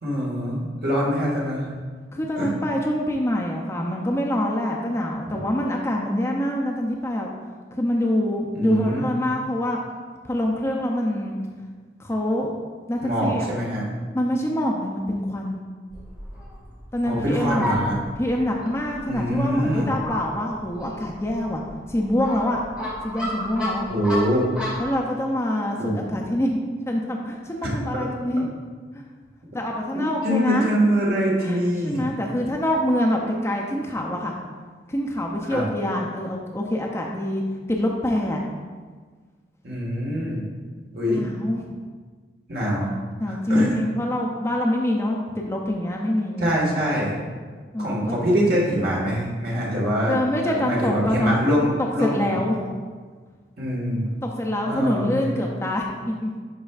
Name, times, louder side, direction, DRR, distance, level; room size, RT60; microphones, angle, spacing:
voice 1, 0.0-1.7 2.4-2.5 8.5-9.0 13.0-13.8 17.0-17.9 19.1-19.9 23.9-24.5 25.8-26.0 29.9-32.1 35.5-35.6 39.6-40.4 40.9-41.2 42.5-42.9 43.3-43.8 46.4-47.2 47.8-50.2 50.5-52.3 53.6-54.1 54.7-55.3, equal, 55° right, -4 dB, 1.5 m, -24 dB
voice 2, 2.1-7.3 7.7-9.8 10.2-11.4 12.0-12.5 12.9-13.5 14.1-15.6 16.9-17.7 18.2-21.6 21.9-22.6 23.0-23.9 24.8-26.6 26.9-28.5 28.9-29.0 29.5-30.7 31.4-31.6 31.8-34.3 34.9-37.4 37.7-38.4 41.0-41.6 42.8-42.9 43.2-46.5 47.7-48.2 50.1-51.4 51.8-52.6 54.2-56.4, left 1 dB, 15° left, -1 dB, 0.5 m, -25 dB
Fowl, 15.9-24.9, left 1 dB, 5° right, 1.8 m, -33 dB
10.0 x 4.3 x 2.4 m, 1.5 s
head